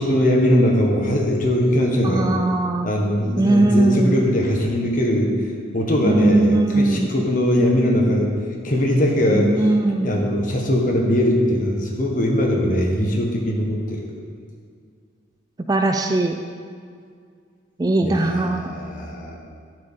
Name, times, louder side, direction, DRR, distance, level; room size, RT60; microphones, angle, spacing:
voice 1, 0.0-2.3 2.8-5.3 5.7-8.3 8.6-9.5 10.0-14.0 18.0-19.3, equal, 45° left, 0 dB, 1.4 m, -20 dB
voice 2, 2.0-2.9 3.4-4.2 6.0-7.1 9.3-10.1 15.7-16.3 17.8-18.7, right 2 dB, 20° right, 5 dB, 0.3 m, -19 dB
9.8 x 7.8 x 3.8 m, 2.2 s
head